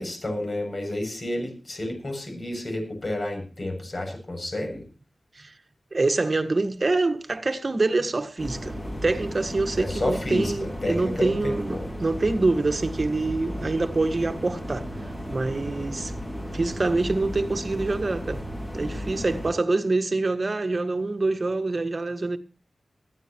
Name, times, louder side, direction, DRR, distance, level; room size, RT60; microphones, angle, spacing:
voice 1, 0.0-4.8 9.8-11.9, left 1 dB, 45° left, 7.1 m, -30 dB
voice 2, 5.9-14.9 15.3-16.1 16.5-18.4 18.7-22.4, right 3 dB, 45° right, 1.6 m, -25 dB
sound 1, 8.4-19.5, equal, 20° left, 3.0 m, -34 dB
20.0 x 14.0 x 3.0 m
wide cardioid pair, 85°, 0 cm